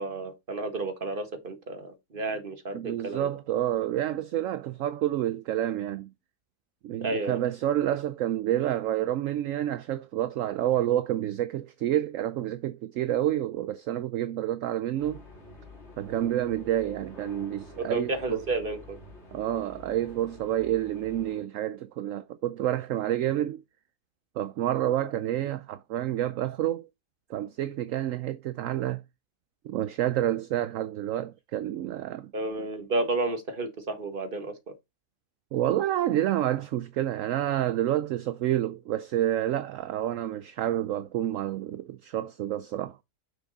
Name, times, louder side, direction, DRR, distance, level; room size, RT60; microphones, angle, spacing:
voice 1, 0.0-3.3 7.0-7.4 17.8-19.0 32.3-34.6, right 2 dB, 35° right, 1.5 m, -31 dB
voice 2, 2.7-6.1 6.8-15.2 16.0-18.4 19.3-23.6 24.4-26.9 27.3-29.0 29.6-32.3 35.5-43.0, right 12 dB, 65° right, 0.8 m, -29 dB
sound 1, 15.0-21.4, left 2 dB, 45° left, 2.9 m, -48 dB
6.7 x 6.3 x 4.0 m
omnidirectional pair, 1.7 m